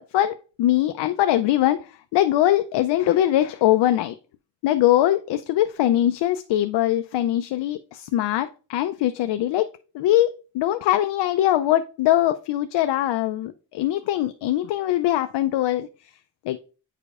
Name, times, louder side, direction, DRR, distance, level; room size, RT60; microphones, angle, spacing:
voice 1, 0.0-1.8 2.1-4.1 4.6-9.7 9.9-15.9 16.5-16.6, left 13 dB, 70° left, 0.5 m, -22 dB
9.3 x 5.0 x 2.4 m
cardioid pair, 155°, 44 cm